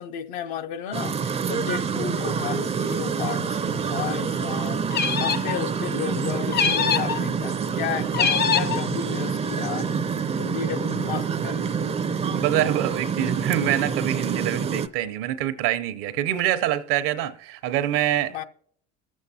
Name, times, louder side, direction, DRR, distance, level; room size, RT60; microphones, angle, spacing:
voice 1, 0.0-4.8 5.2-9.9 10.4-11.7 18.3-18.4, left 9 dB, 70° left, 0.8 m, -33 dB
sound 1, 0.9-14.9, right 6 dB, 20° right, 0.5 m, -27 dB
sound 2, 4.9-5.6 6.5-7.2 8.1-8.8, left 7 dB, 30° left, 0.6 m, -23 dB
voice 2, 12.3-18.4, right 12 dB, 65° right, 0.8 m, -25 dB
20.5 x 7.3 x 2.8 m
hypercardioid pair, 80°, 35 cm